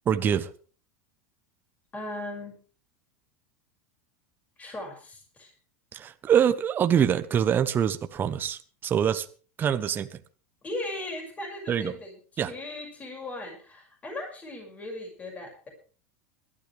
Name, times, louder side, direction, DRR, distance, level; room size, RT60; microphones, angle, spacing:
voice 1, 0.1-0.5 5.9-9.3 9.6-10.2 11.7-11.9 12.4-12.5, right 8 dB, 25° right, 1.0 m, -24 dB
voice 2, 1.9-2.6 4.6-5.5 10.6-15.7, left 1 dB, 20° left, 6.2 m, -38 dB
21.0 x 12.5 x 3.5 m
supercardioid pair, 135°, 8 cm